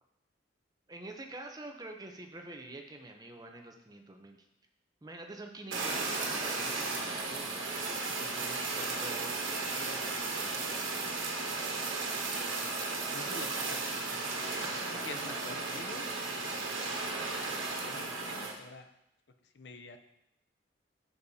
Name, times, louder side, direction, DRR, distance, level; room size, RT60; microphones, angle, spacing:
voice 1, 0.9-4.4 5.0-11.7 15.2-15.4, right 2 dB, 20° right, 3 dB, 0.6 m, -47 dB
Fire, 5.7-18.5, right 3 dB, 80° right, 1.3 m, -35 dB
voice 2, 13.1-16.1 17.8-18.9 19.5-20.0, left 3 dB, 60° left, 8 dB, 0.6 m, -47 dB
8.4 x 7.0 x 2.8 m, 0.86 s
head